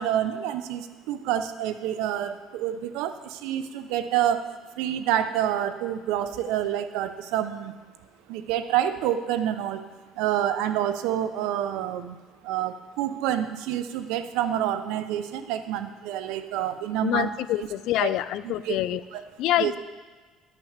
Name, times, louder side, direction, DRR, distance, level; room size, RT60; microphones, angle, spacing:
voice 1, 0.0-4.5 4.8-7.7 8.3-9.9 10.2-12.2 12.4-17.3 17.6-17.7 18.0-18.1 18.4-18.8 19.1-19.2 19.6-19.8, right 11 dB, 85° right, 10 dB, 0.7 m, -28 dB
voice 2, 17.0-19.0 19.4-19.8, left 14 dB, 70° left, 15 dB, 0.4 m, -26 dB
11.5 x 5.9 x 6.6 m, 1.4 s
cardioid pair, 110°, 0 cm